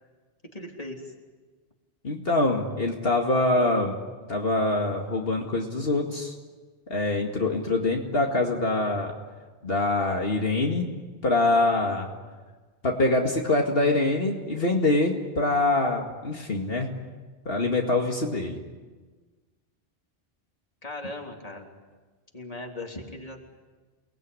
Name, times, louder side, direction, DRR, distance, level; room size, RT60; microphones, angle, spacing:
voice 1, 0.5-1.1 20.8-21.7 22.3-23.4, left 2 dB, 35° left, 1 dB, 3.6 m, -38 dB
voice 2, 2.0-4.0 4.3-6.3 6.9-9.2 9.6-10.9 11.2-12.1 12.8-16.9 17.5-18.6, left 2 dB, 70° left, 0 dB, 2.5 m, -24 dB
29.5 x 20.5 x 9.8 m, 1.4 s
omnidirectional pair, 1.0 m